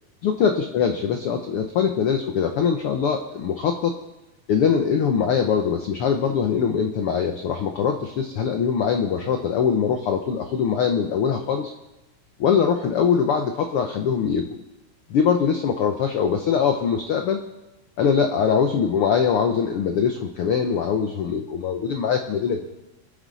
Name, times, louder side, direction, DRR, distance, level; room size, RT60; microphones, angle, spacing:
voice 1, 0.2-3.9 4.5-11.7 12.4-14.5 15.1-17.5 18.0-22.7, left 7 dB, 65° left, 5 dB, 1.4 m, -22 dB
26.0 x 9.8 x 4.1 m, 1.0 s
omnidirectional pair, 3.5 m